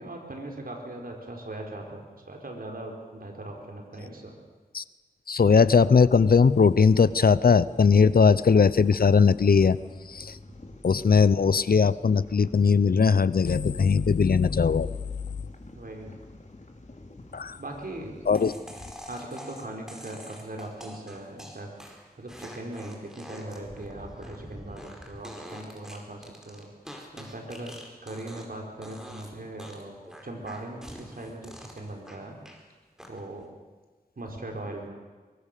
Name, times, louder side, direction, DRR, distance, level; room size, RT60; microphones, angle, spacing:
voice 1, 0.0-4.4 15.7-16.2 17.6-18.1 19.1-21.7 22.2-26.7 27.1-27.7 28.0-32.4 33.1-33.5 34.2-34.9, right 1 dB, 70° right, 1 dB, 4.4 m, -39 dB
voice 2, 5.3-9.8 10.1-10.4 10.8-15.0 17.3-17.6 18.3-18.5, left 5 dB, 75° left, 17 dB, 0.7 m, -20 dB
sound 1, 6.1-18.9, left 2 dB, 50° left, 3.1 m, -46 dB
sound 2, 18.3-28.6 28.8-29.3 29.6-32.6 33.0-33.4, equal, 5° right, 4.7 m, -45 dB
23.5 x 23.0 x 6.8 m, 1.3 s
wide cardioid pair, 60°, 16 cm